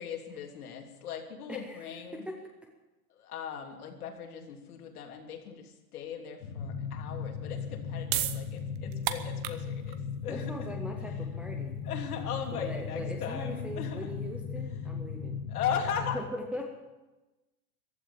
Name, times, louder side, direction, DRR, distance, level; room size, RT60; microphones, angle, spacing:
voice 1, 0.0-2.3 3.1-10.7 11.8-14.2 15.5-16.2, left 7 dB, 75° left, 2 dB, 3.2 m, -38 dB
sound 1, 6.4-16.2, left 6 dB, 50° left, 2.3 m, -37 dB
sound 2, 7.6-14.4, right 13 dB, 35° right, 0.9 m, -38 dB
voice 2, 10.3-11.8 12.5-15.4 16.1-16.2 16.5-16.7, equal, 5° right, 0 dB, 0.5 m, -40 dB
15.0 x 12.5 x 7.2 m, 1.1 s
supercardioid pair, 160°, 45 cm